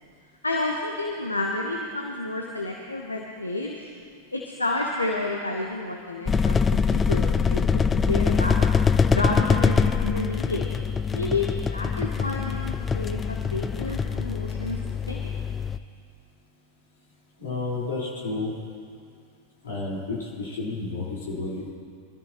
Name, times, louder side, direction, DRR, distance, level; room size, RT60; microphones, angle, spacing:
voice 1, 0.4-3.9 4.3-8.7 9.1-10.8 11.1-14.8 15.1-15.3, left 2 dB, 80° left, 0 dB, 1.2 m, -30 dB
sound 1, 6.3-15.8, left 5 dB, 20° left, 0.4 m, -24 dB
voice 2, 17.4-18.5 19.6-21.7, left 3 dB, 65° left, -5 dB, 4.6 m, -31 dB
24.0 x 13.5 x 3.1 m, 2.3 s
figure-of-eight pair, 90°, 0 cm